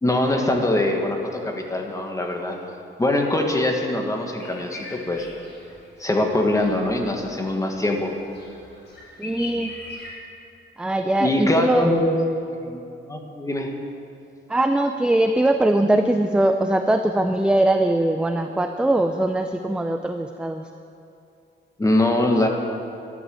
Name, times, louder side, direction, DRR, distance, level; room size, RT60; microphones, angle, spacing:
voice 1, 0.0-2.6 3.0-5.3 6.0-8.1 11.2-12.1 12.6-12.8 13.1-13.7 21.8-22.5, left 1 dB, 15° left, 2 dB, 1.4 m, -22 dB
sound 1, 4.4-10.1, left 2 dB, 55° left, 4.4 m, -42 dB
voice 2, 9.2-9.8 10.8-11.9 14.5-20.7, right 1 dB, 5° right, 6 dB, 0.4 m, -21 dB
12.0 x 11.0 x 7.6 m, 2.6 s
wide cardioid pair, 165°, 21 cm